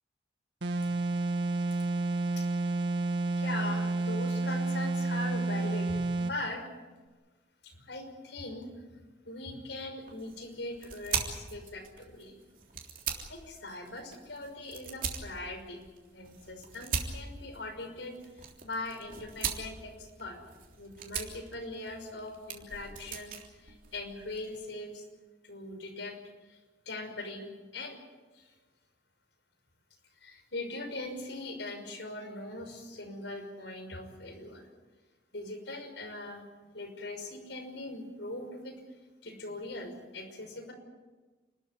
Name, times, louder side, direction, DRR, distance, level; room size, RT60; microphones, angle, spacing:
sound 1, 0.6-6.4, right 2 dB, 75° right, 1.9 m, -30 dB
voice 1, 3.3-6.7 7.6-12.3 13.3-15.9 16.1-20.4 20.8-25.0 25.4-26.2 26.4-26.6 26.9-28.0 28.3-28.5 30.2-34.7 35.3-36.4 36.7-38.8 39.2-40.7, left 2 dB, 80° left, 4 dB, 6.0 m, -41 dB
sound 2, 10.0-24.6, right 6 dB, 45° right, 3.4 m, -41 dB
29.0 x 13.5 x 9.8 m, 1.3 s
head